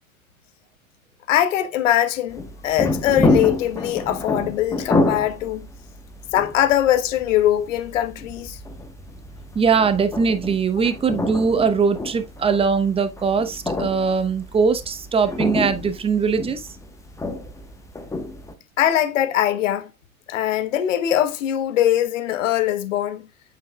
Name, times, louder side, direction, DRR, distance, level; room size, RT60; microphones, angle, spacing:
voice 1, 1.3-5.7 6.3-8.6 10.8-10.9 18.8-19.9 20.3-23.2, left 12 dB, 60° left, 1.1 m, -21 dB
sound 1, 2.3-18.5, left 2 dB, 5° left, 1.1 m, -28 dB
voice 2, 9.5-16.7, right 5 dB, 15° right, 0.8 m, -21 dB
7.9 x 7.6 x 2.3 m
figure-of-eight pair, 90°, 43 cm